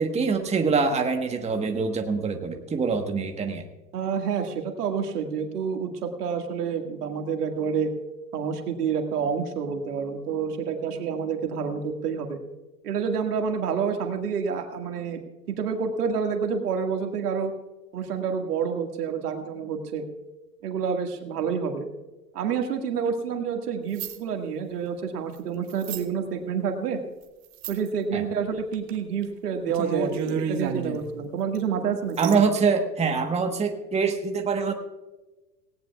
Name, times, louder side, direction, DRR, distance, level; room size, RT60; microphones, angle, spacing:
voice 1, 0.0-3.6 28.1-28.2 32.2-34.7, right 5 dB, 15° right, 5 dB, 1.3 m, -24 dB
voice 2, 3.9-7.9 8.3-12.4 12.8-15.2 15.6-17.5 17.9-20.0 20.6-21.9 22.3-27.0 27.7-32.4, right 6 dB, 70° right, 4 dB, 2.1 m, -28 dB
sound 1, 23.9-24.2 25.7-26.0 27.5-27.9 28.7-29.0 29.2-29.3 29.7-31.0 31.5-31.6 32.1-32.3, right 6 dB, 35° right, 1.4 m, -31 dB
18.0 x 18.0 x 2.4 m, 1.1 s
figure-of-eight pair, 95°, 48 cm